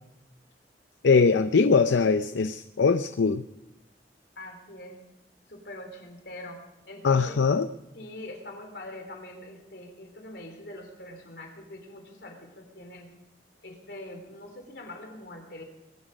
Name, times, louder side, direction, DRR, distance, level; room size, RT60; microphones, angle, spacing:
voice 1, 1.0-3.4 7.0-7.7, left 4 dB, 85° left, 10 dB, 0.5 m, -21 dB
voice 2, 4.4-5.0 5.5-7.4 7.9-13.1 13.6-15.6, left 1 dB, 65° left, 4 dB, 3.5 m, -43 dB
21.5 x 11.5 x 5.2 m, 0.94 s
head